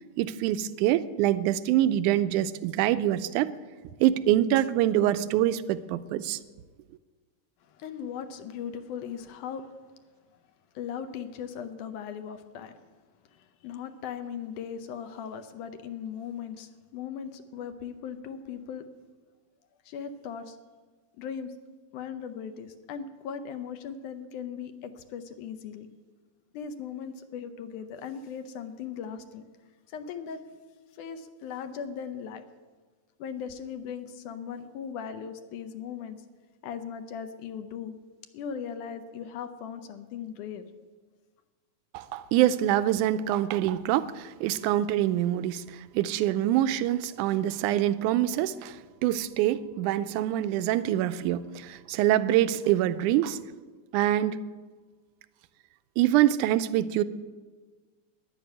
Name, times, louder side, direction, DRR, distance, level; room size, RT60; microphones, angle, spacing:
voice 1, 0.2-3.5 4.0-6.4 41.9-53.4 53.9-54.5 56.0-57.0, right 12 dB, 85° right, 13 dB, 2.1 m, -25 dB
voice 2, 7.6-9.7 10.8-12.8 13.3-18.9 19.9-20.6 21.2-21.5 21.9-25.9 26.5-29.4 29.9-30.4 31.0-32.4 33.2-36.2 36.6-38.0 38.3-40.7, left 7 dB, 80° left, 8 dB, 2.3 m, -38 dB
12.5 x 11.0 x 9.1 m, 1.4 s
omnidirectional pair, 3.6 m